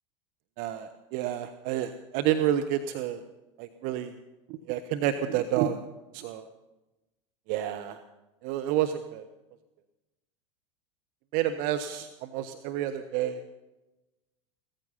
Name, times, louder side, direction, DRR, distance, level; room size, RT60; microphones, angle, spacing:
voice 1, 0.6-3.2 3.6-4.1 4.7-5.8 6.1-6.4 7.5-8.0 8.4-9.2 11.3-13.4, right 11 dB, 55° right, 8 dB, 1.1 m, -29 dB
17.0 x 14.5 x 5.7 m, 1.0 s
hypercardioid pair, 85°, 17 cm